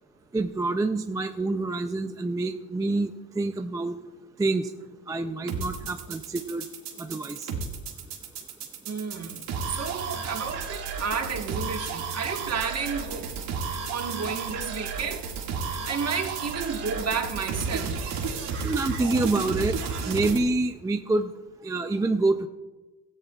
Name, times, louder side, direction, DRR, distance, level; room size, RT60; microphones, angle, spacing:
voice 1, 0.3-3.1 3.4-4.0 4.4-4.7 5.1-6.6 7.0-7.5 18.6-19.8 20.1-21.3 21.6-22.5, right 2 dB, 10° right, 0.3 m, -27 dB
sound 1, 5.5-20.4, right 5 dB, 85° right, 2.0 m, -33 dB
voice 2, 8.9-13.4 13.9-15.3 15.8-18.0, right 5 dB, 40° right, 1.3 m, -32 dB
17.5 x 13.5 x 2.3 m
cardioid pair, 105°, 40 cm